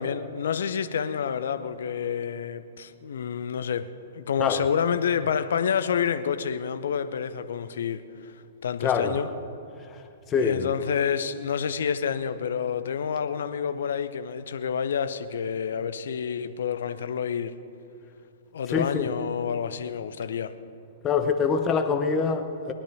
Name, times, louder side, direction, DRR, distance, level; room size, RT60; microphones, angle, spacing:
voice 1, 0.0-3.9 4.1-8.0 8.6-9.3 10.4-17.5 18.5-20.5, left 7 dB, 60° left, 11 dB, 0.7 m, -28 dB
voice 2, 8.8-9.2 10.3-10.7 18.7-19.1 21.0-22.7, left 5 dB, 20° left, 7 dB, 0.9 m, -25 dB
21.0 x 10.0 x 5.5 m, 2.7 s
figure-of-eight pair, 110°, 0 cm